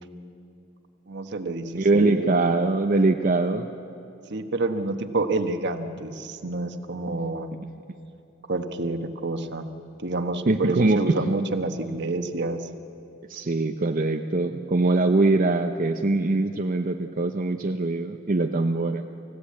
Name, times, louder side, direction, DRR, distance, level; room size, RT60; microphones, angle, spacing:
voice 1, 1.1-2.5 4.3-7.5 8.5-9.7 10.0-12.7, right 2 dB, 60° right, 7 dB, 1.3 m, -28 dB
voice 2, 1.7-3.7 10.5-11.3 13.3-19.0, right 2 dB, 45° right, 6 dB, 0.7 m, -22 dB
28.0 x 15.5 x 8.6 m, 2.8 s
head